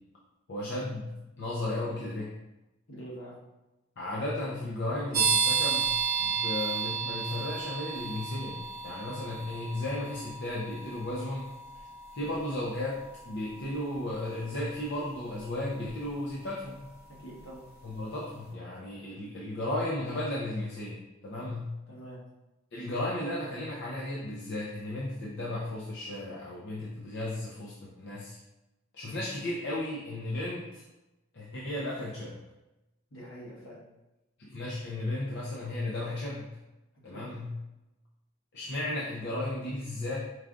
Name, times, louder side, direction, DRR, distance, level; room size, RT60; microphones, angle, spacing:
voice 1, 0.5-2.4 4.0-11.9 12.1-16.9 17.8-21.8 22.7-28.4 28.9-30.8 31.3-32.4 34.4-36.6 37.0-37.5 38.5-40.2, left 1 dB, 55° left, -5 dB, 0.6 m, -35 dB
voice 2, 2.9-3.3 17.1-17.7 21.9-22.2 33.1-33.8 37.0-37.2, right 1 dB, 75° left, -5 dB, 1.4 m, -45 dB
sound 1, 5.1-17.7, right 6 dB, 50° right, 0.8 m, -34 dB
4.7 x 2.4 x 3.7 m, 0.99 s
head